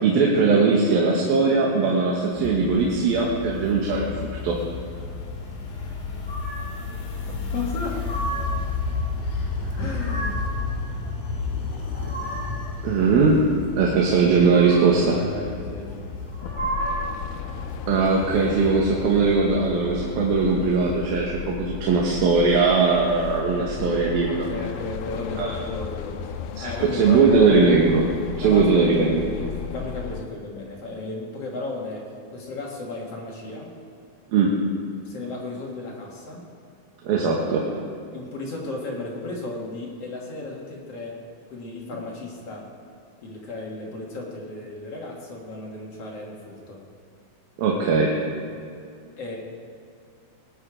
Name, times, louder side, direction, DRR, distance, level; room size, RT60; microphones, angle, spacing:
voice 1, 0.0-4.6 12.8-13.4 13.8-15.1 17.9-24.4 25.4-25.6 26.6-28.0 28.4-29.3 34.3-34.5 37.0-37.6 47.6-48.1, right 4 dB, 75° right, -2 dB, 3.0 m, -20 dB
sound 1, 2.3-18.7, left 4 dB, 70° left, 3.8 m, -32 dB
sound 2, 6.2-6.8 7.7-8.7 9.6-10.6 11.6-12.7 14.2-15.1 16.2-17.3, right 2 dB, 20° right, 3.6 m, -33 dB
voice 2, 7.5-8.1 9.8-10.4 14.9-16.1 21.8-22.0 23.6-24.0 24.3-26.3 26.6-27.7 28.4-33.7 35.0-36.5 38.1-41.2 41.5-42.7 43.2-46.8 49.2-49.4, left 2 dB, 50° left, -2 dB, 2.3 m, -34 dB
sound 3, 16.4-30.3, left 8 dB, 90° left, 2.6 m, -35 dB
20.0 x 9.2 x 5.0 m, 2.3 s
omnidirectional pair, 4.4 m